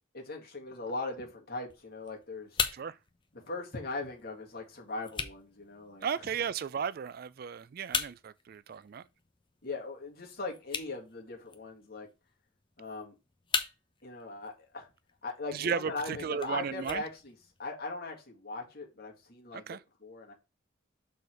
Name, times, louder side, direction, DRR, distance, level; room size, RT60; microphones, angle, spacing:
voice 1, 0.1-2.6 3.3-6.3 9.6-12.1 12.8-13.1 14.0-14.9 15.2-17.3 17.6-20.3, left 3 dB, 50° left, 2.0 m, -40 dB
sound 1, 1.7-17.7, left 5 dB, 25° left, 0.8 m, -41 dB
voice 2, 6.0-9.0 15.5-17.0 19.5-19.8, right 7 dB, 50° right, 0.3 m, -35 dB
6.6 x 4.2 x 4.5 m
head